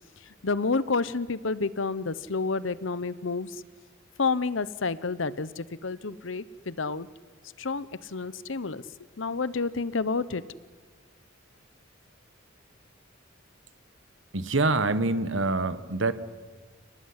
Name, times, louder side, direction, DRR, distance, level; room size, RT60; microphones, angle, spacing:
voice 1, 0.3-3.6 4.2-7.1 7.6-8.8 9.2-10.4, left 4 dB, 70° left, 17 dB, 0.9 m, -29 dB
voice 2, 14.3-16.1, right 2 dB, 70° right, 13 dB, 1.5 m, -25 dB
29.0 x 19.0 x 9.8 m, 1.5 s
head